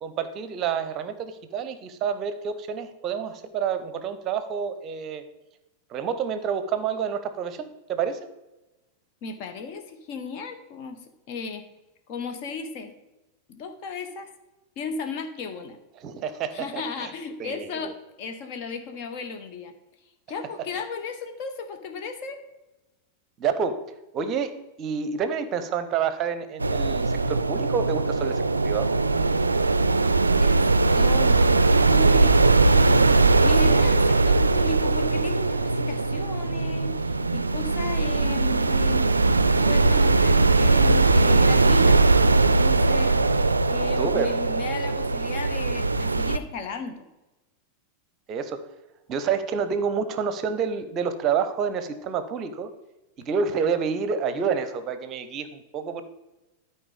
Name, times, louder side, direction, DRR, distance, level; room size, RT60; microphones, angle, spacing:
voice 1, 0.0-5.2 5.9-8.3 16.0-17.1 17.4-17.9 23.4-23.8 24.1-24.5 24.8-28.9 44.0-44.3 48.3-48.6 49.1-52.7 53.2-56.0, right 6 dB, 35° right, 11 dB, 0.8 m, -28 dB
voice 2, 9.2-11.0 11.3-11.6 12.1-12.9 13.5-14.3 14.8-15.8 16.5-17.9 18.2-19.7 20.3-22.4 30.4-31.4 31.9-39.1 39.6-42.0 42.6-47.0, left 4 dB, 45° left, 6 dB, 1.2 m, -35 dB
sound 1, 26.6-46.4, right 3 dB, 80° right, 0.4 m, -20 dB
12.0 x 4.6 x 5.2 m, 1.0 s
figure-of-eight pair, 90°, 0 cm